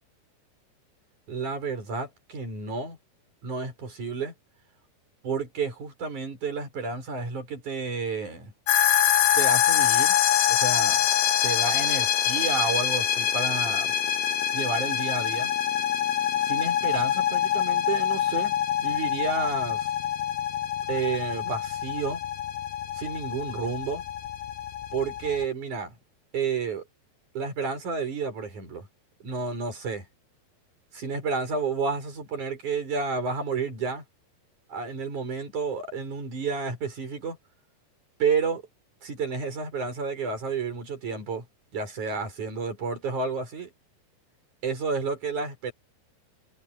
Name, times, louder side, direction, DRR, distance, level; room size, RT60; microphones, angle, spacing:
voice 1, 1.3-3.0 3.4-4.3 5.2-8.5 9.4-10.1 10.5-11.0 11.4-13.9 14.5-15.5 16.4-19.9 20.9-22.2 22.9-24.0 24.9-25.9 26.3-26.8 27.3-28.9 29.2-30.0 30.9-34.0 34.7-37.4 38.2-38.6 39.0-41.4 41.7-43.7 44.6-45.7, right 4 dB, 45° right, 8.1 m, -30 dB
sound 1, 8.7-25.5, left 10 dB, 70° left, 2.3 m, -25 dB
omnidirectional pair, 5.1 m